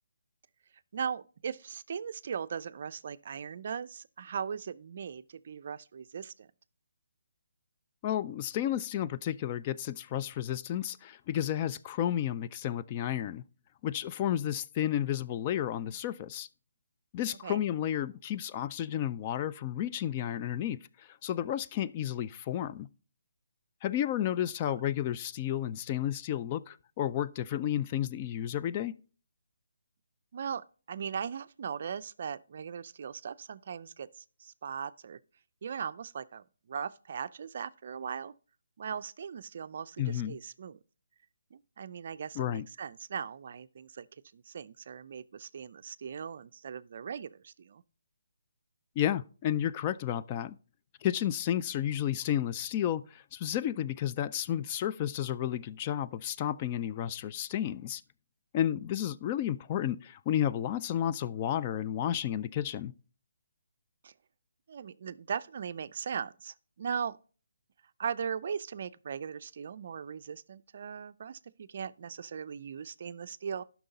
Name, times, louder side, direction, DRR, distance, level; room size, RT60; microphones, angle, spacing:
voice 1, 0.9-6.5 17.4-17.6 24.7-24.8 30.3-35.2 35.6-38.3 38.8-40.8 41.5-44.1 44.3-47.8 64.0-64.1 64.7-67.2 68.0-73.6, right 7 dB, 50° right, 0.4 m, -39 dB
voice 2, 8.0-13.4 13.8-16.5 17.1-22.9 23.8-29.0 40.0-40.4 42.4-42.7 49.0-50.5 51.0-58.0 58.5-62.9, left 11 dB, 30° left, 0.3 m, -32 dB
11.0 x 5.9 x 4.0 m
figure-of-eight pair, 150°, 0 cm